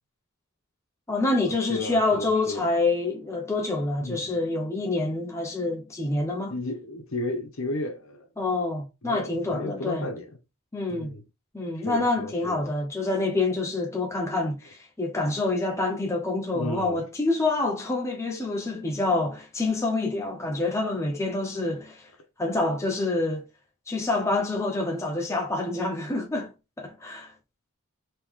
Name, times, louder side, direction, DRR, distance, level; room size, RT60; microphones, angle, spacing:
voice 1, 1.1-6.6 8.4-10.1 10.7-11.1 11.5-22.1 22.4-23.4 23.9-27.3, left 2 dB, 15° left, 0.5 m, -27 dB
voice 2, 1.7-2.7 4.0-4.3 6.5-8.3 9.0-10.3 10.9-11.2 11.8-12.6 16.5-17.0, left 2 dB, 65° left, 0.9 m, -33 dB
3.1 x 3.1 x 3.6 m
head